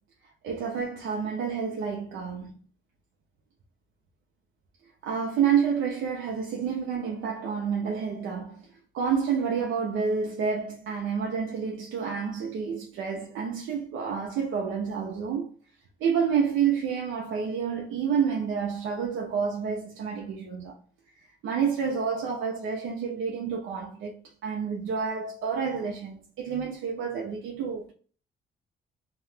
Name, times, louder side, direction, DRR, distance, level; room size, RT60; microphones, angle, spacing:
voice 1, 0.4-2.5 5.0-8.7 8.9-15.5 16.0-20.8 21.4-24.2 24.4-27.9, right 6 dB, 80° right, 0.6 m, -29 dB
2.8 x 2.2 x 3.2 m
cardioid pair, 90°, 20 cm